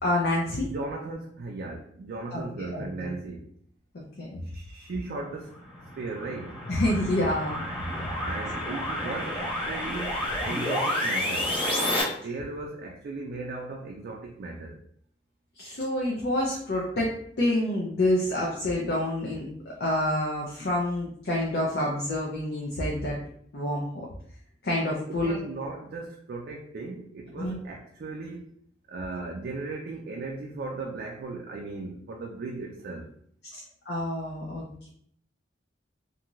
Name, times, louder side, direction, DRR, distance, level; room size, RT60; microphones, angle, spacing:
voice 1, 0.0-0.7 2.3-3.1 3.9-4.4 6.7-7.6 15.6-23.2 23.5-24.1 24.6-25.4 27.3-27.6 33.5-33.6 33.9-34.9, left 1 dB, 60° left, -3 dB, 0.5 m, -28 dB
voice 2, 0.7-3.5 4.5-5.6 6.0-6.6 8.2-11.6 12.0-14.8 25.1-28.5 28.9-33.1, right 3 dB, 55° right, 0 dB, 0.3 m, -37 dB
sound 1, 5.5-12.0, left 1 dB, 30° left, 0.8 m, -30 dB
2.6 x 2.4 x 3.0 m, 0.64 s
head